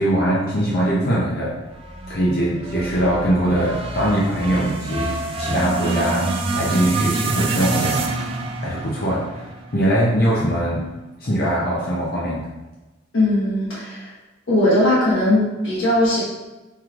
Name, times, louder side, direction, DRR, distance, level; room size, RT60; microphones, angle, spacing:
voice 1, 0.0-1.5 2.1-8.0 8.6-9.4 9.7-10.9 11.2-12.5, right 1 dB, 50° left, -6 dB, 0.7 m, -21 dB
sound 1, 1.7-10.1, right 3 dB, 30° right, 0.4 m, -27 dB
voice 2, 13.1-14.1 14.5-16.2, left 1 dB, 75° left, -9 dB, 1.4 m, -19 dB
5.5 x 3.0 x 2.4 m, 1.1 s
head